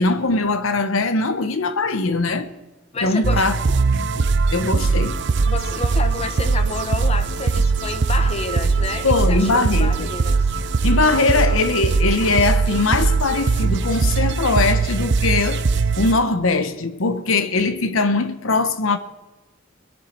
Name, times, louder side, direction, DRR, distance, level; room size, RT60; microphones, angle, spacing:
voice 1, 0.0-2.5 3.0-3.6 3.9-4.2 4.5-5.2 9.0-10.1 10.8-15.6 16.0-19.0, left 3 dB, 70° left, 1.0 m, -21 dB
voice 2, 2.9-3.5 5.5-10.5, left 3 dB, 30° left, 1.0 m, -30 dB
sound 1, 3.2-16.1, right 4 dB, 55° right, 0.6 m, -20 dB
20.0 x 10.5 x 4.5 m
head